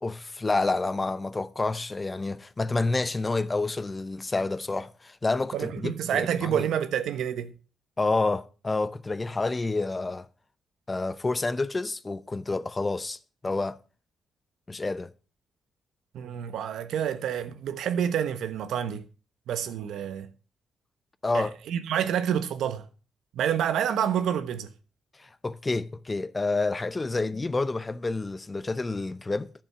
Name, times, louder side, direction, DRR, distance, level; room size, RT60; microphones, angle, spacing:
voice 1, 0.0-6.7 8.0-10.3 10.9-13.8 14.7-15.1 21.2-21.5 25.2-29.5, left 3 dB, 25° left, 0.7 m, -29 dB
voice 2, 5.5-7.5 16.1-19.1 19.5-20.3 21.3-22.9 23.3-24.7, right 9 dB, 85° right, 1.1 m, -28 dB
11.5 x 7.0 x 6.0 m
cardioid pair, 100°, 0 cm